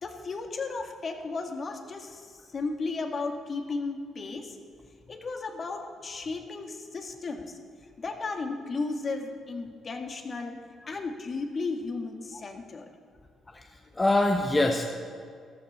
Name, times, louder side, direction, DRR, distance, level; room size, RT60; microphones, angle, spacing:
voice 1, 0.0-4.6 5.1-7.6 8.0-10.6 10.9-12.9, left 3 dB, 45° left, 4 dB, 1.7 m, -34 dB
voice 2, 13.5-14.8, left 2 dB, 20° left, 3 dB, 1.0 m, -25 dB
14.0 x 12.0 x 5.5 m, 2.1 s
cardioid pair, 90°, 0 cm